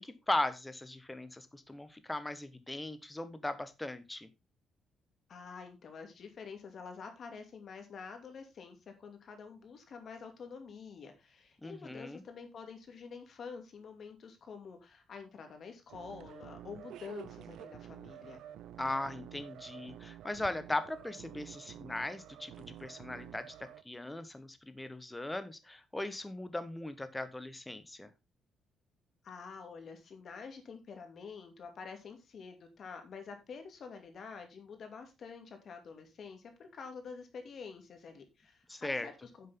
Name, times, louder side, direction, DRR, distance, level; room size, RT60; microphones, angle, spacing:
voice 1, 0.0-4.3 11.6-12.2 18.8-28.1 38.7-39.1, left 1 dB, 10° left, 12 dB, 1.2 m, -38 dB
voice 2, 5.3-18.4 29.2-39.5, left 5 dB, 50° left, 5 dB, 2.6 m, -48 dB
sound 1, 15.9-23.8, right 11 dB, 85° right, 0.7 m, -50 dB
10.5 x 7.5 x 3.7 m, 0.25 s
cardioid pair, 125°, 0 cm